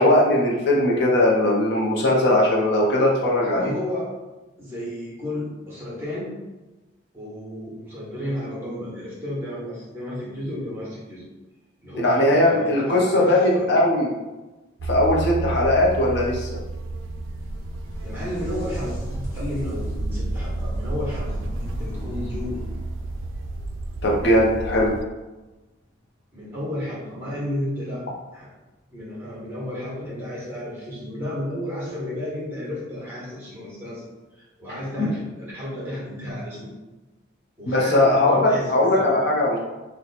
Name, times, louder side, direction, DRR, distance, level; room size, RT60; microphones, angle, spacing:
voice 1, 0.0-3.7 12.0-14.1 14.8-16.5 24.0-24.9 37.7-39.6, left 1 dB, 55° left, -3 dB, 0.6 m, -19 dB
voice 2, 3.4-4.1 4.6-6.3 7.1-11.3 11.8-13.8 18.0-19.1 19.3-22.6 26.3-28.0 28.3-28.5 28.9-34.1 34.4-36.7 37.6-39.1, left 1 dB, 10° right, -7 dB, 1.0 m, -32 dB
sound 1, 14.8-25.0, right 2 dB, 80° right, 0.3 m, -32 dB
sound 2, 16.9-24.5 27.8-27.9 29.0-29.1, equal, 90° left, 0.8 m, -34 dB
2.9 x 2.1 x 4.0 m, 1.1 s
head